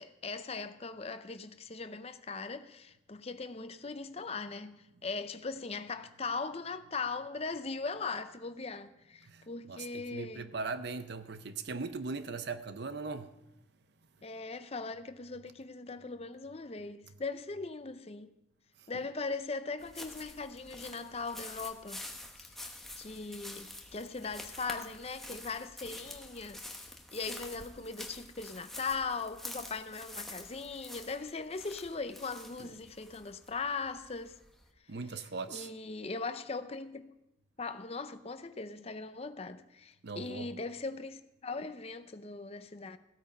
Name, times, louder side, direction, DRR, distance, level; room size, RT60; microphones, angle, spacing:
voice 1, 0.0-10.5 14.2-18.3 18.9-22.0 22.4-22.6 23.0-34.4 35.1-37.1 37.6-43.0, left 4 dB, 30° left, 0.6 m, -39 dB
voice 2, 9.2-13.3 32.6-32.7 34.9-35.7 40.0-40.5, right 4 dB, 55° right, 0.6 m, -39 dB
sound 1, 19.8-34.7, left 1 dB, ahead, 1.0 m, -47 dB
16.0 x 8.8 x 5.4 m
head